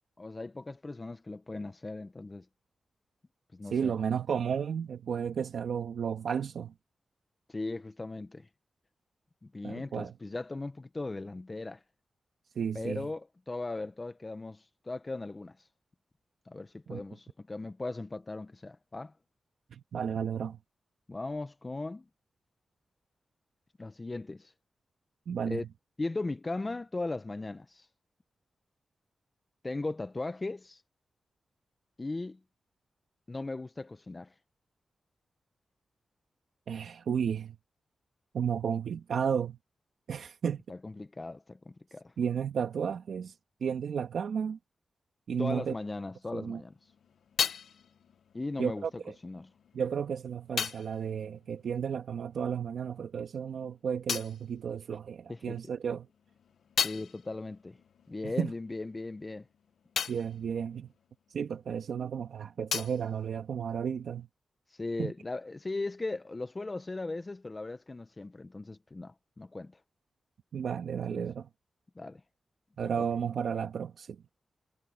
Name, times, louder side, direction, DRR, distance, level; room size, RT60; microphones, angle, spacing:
voice 1, 0.2-2.5 3.5-3.9 7.5-8.5 9.4-11.8 12.7-15.7 16.5-19.1 21.1-22.0 23.8-24.5 25.4-25.6 26.0-27.9 29.6-30.8 32.0-32.4 33.3-34.3 40.7-42.1 45.4-46.9 48.3-48.8 49.2-49.5 55.3-55.6 56.8-57.8 58.1-59.5 64.7-69.8 71.1-71.2 72.0-72.2 73.0-73.1, left 2 dB, 35° left, 1.0 m, -38 dB
voice 2, 3.6-6.7 9.6-10.1 12.6-13.1 16.9-17.0 19.7-20.6 25.3-25.6 36.7-37.6 38.3-39.6 40.1-40.6 42.2-43.3 43.6-44.6 45.3-45.7 46.3-46.6 48.6-49.1 49.7-56.1 58.2-58.5 60.1-60.9 61.3-64.3 65.0-65.1 70.5-71.5 72.8-74.2, right 7 dB, 80° right, 1.9 m, -33 dB
sound 1, 46.5-52.6 52.8-55.5 55.9-62.0 62.2-64.2, left 7 dB, 80° left, 1.2 m, -39 dB
cardioid pair, 55°, 0 cm